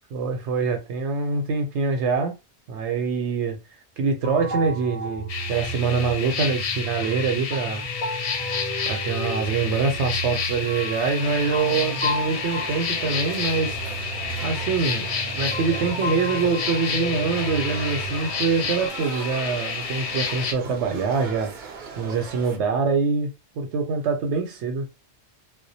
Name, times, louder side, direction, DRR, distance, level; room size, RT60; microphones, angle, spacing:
voice 1, 0.1-2.3 2.7-3.6 4.0-7.8 8.9-13.8 14.2-21.5 22.0-24.9, right 4 dB, 90° right, 0.9 m, -25 dB
sound 1, 4.2-18.9, right 1 dB, 15° left, 0.4 m, -33 dB
sound 2, 5.3-20.5, left 6 dB, 65° left, 0.7 m, -30 dB
sound 3, 11.2-22.6, right 5 dB, 55° right, 0.6 m, -39 dB
2.3 x 2.1 x 2.6 m
omnidirectional pair, 1.2 m